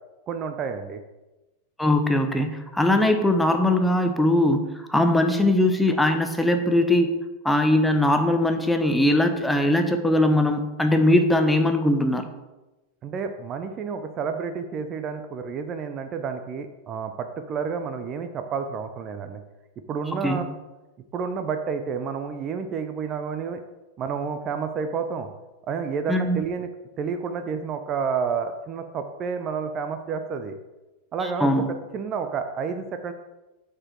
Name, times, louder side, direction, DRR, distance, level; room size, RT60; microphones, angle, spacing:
voice 1, 0.3-1.0 13.0-19.4 19.9-20.5 21.1-23.6 24.0-25.3 25.7-26.7 27.0-30.6 31.1-31.6 31.9-33.1, right 6 dB, 30° right, 8 dB, 0.6 m, -30 dB
voice 2, 1.8-4.6 4.9-7.1 7.4-12.3 20.1-20.4 26.1-26.4 31.4-31.7, left 1 dB, 5° left, 5 dB, 0.7 m, -20 dB
8.6 x 4.5 x 4.6 m, 1.1 s
figure-of-eight pair, 90°, 0 cm